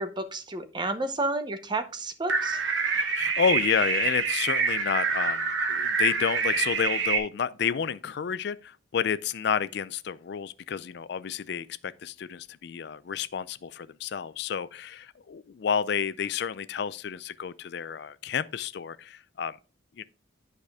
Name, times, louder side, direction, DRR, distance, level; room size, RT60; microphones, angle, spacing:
voice 1, 0.0-2.6, right 2 dB, 25° right, 0.7 m, -31 dB
sound 1, 2.3-7.2, right 5 dB, 80° right, 1.2 m, -26 dB
voice 2, 3.2-19.6 20.0-20.1, left 7 dB, 60° left, 0.4 m, -30 dB
10.5 x 4.9 x 3.5 m
head